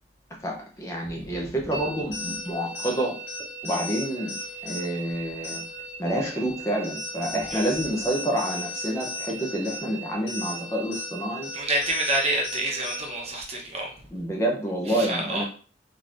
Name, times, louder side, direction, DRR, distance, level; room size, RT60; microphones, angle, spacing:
voice 1, 0.4-3.2 3.6-4.4 4.6-5.6 6.0-11.5 14.1-15.4, right 1 dB, 15° left, -1 dB, 0.7 m, -28 dB
sound 1, 1.7-13.3, equal, 85° left, 1.6 m, -36 dB
voice 2, 11.5-13.9 14.9-15.5, right 1 dB, 35° right, -1 dB, 0.9 m, -27 dB
3.8 x 3.0 x 2.5 m, 0.40 s
head